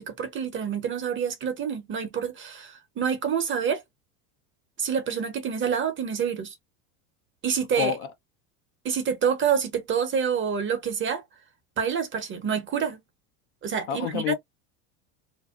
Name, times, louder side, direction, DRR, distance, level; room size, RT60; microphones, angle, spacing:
voice 1, 0.0-3.8 4.8-6.5 7.4-8.0 8.8-11.2 11.8-13.0 13.6-14.3, right 7 dB, 25° right, 0.8 m, -27 dB
voice 2, 7.8-8.1 13.9-14.3, left 10 dB, 80° left, 0.9 m, -28 dB
2.6 x 2.2 x 2.4 m
supercardioid pair, 110°, 43 cm